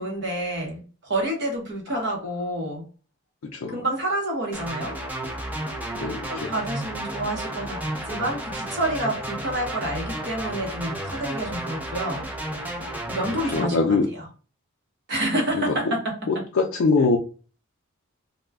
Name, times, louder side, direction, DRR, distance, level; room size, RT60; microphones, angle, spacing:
voice 1, 0.0-2.9 3.7-5.0 6.0-12.2 13.1-14.3 15.1-16.4, right 1 dB, 55° right, 0 dB, 1.0 m, -29 dB
sound 1, 4.5-13.7, right 1 dB, 10° right, 0.5 m, -32 dB
voice 2, 6.0-6.5 13.5-14.1 15.5-15.9 16.3-17.2, left 4 dB, 80° left, 1 dB, 0.4 m, -23 dB
2.3 x 2.1 x 3.4 m, 0.36 s
head